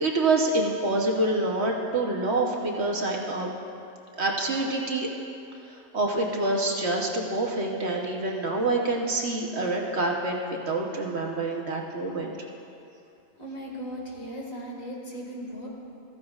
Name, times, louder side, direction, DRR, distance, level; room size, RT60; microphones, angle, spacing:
voice 1, 0.0-3.5 4.2-5.1 5.9-10.4 10.7-12.3, right 2 dB, 50° right, 0 dB, 1.1 m, -26 dB
voice 2, 13.4-15.7, equal, 65° left, -2 dB, 2.2 m, -37 dB
14.5 x 14.5 x 2.4 m, 2.6 s
omnidirectional pair, 1.5 m